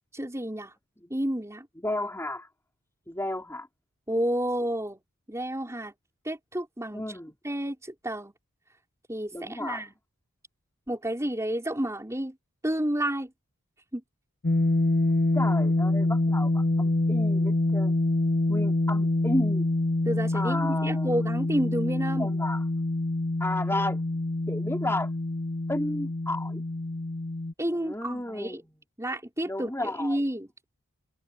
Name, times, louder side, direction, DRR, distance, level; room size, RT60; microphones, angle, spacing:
voice 1, 0.1-0.8 1.1-1.7 4.1-5.0 5.3-5.9 6.2-7.2 7.4-8.3 9.1-9.9 10.9-12.4 12.6-13.3 13.9-14.0 20.0-22.3 27.6-28.6 29.0-30.5, right 1 dB, 15° right, 5.1 m, -30 dB
voice 2, 1.8-2.5 3.1-3.7 6.9-7.3 9.3-9.8 15.3-17.9 18.5-19.7 20.3-21.1 22.2-22.6 23.4-24.0 24.5-25.1 25.7-26.6 27.7-28.6 29.4-30.2, left 1 dB, 10° left, 4.1 m, -32 dB
sound 1, 14.4-27.5, left 2 dB, 50° left, 0.8 m, -26 dB
head